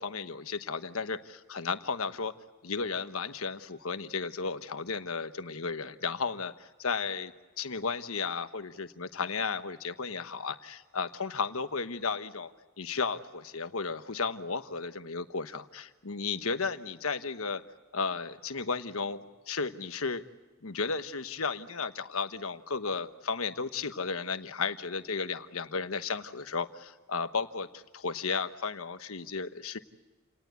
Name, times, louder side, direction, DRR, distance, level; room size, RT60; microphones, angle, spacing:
voice 1, 0.0-2.3 2.6-7.3 7.6-12.5 12.8-17.6 17.9-20.2 20.6-29.8, left 5 dB, 75° left, 10 dB, 1.2 m, -34 dB
29.0 x 19.0 x 8.3 m, 1.3 s
head